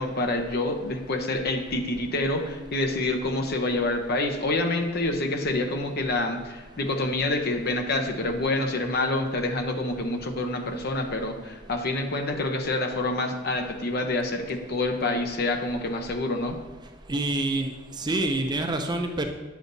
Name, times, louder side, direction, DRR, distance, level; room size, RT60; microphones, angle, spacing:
voice 1, 0.0-16.6, left 2 dB, 55° left, 4 dB, 0.8 m, -27 dB
voice 2, 17.1-17.7 18.0-19.3, right 2 dB, 20° right, 5 dB, 0.5 m, -26 dB
9.1 x 7.1 x 2.7 m, 1.3 s
head